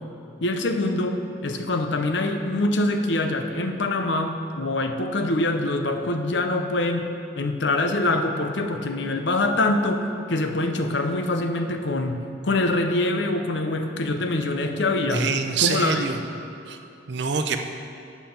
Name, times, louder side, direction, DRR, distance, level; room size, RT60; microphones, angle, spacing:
voice 1, 0.4-10.0 10.3-15.3 15.6-16.1, left 2 dB, 65° left, 6 dB, 0.7 m, -24 dB
voice 2, 15.1-16.2 16.7-16.8 17.1-17.6, right 5 dB, 65° right, 6 dB, 0.6 m, -25 dB
8.3 x 5.8 x 7.1 m, 2.6 s
head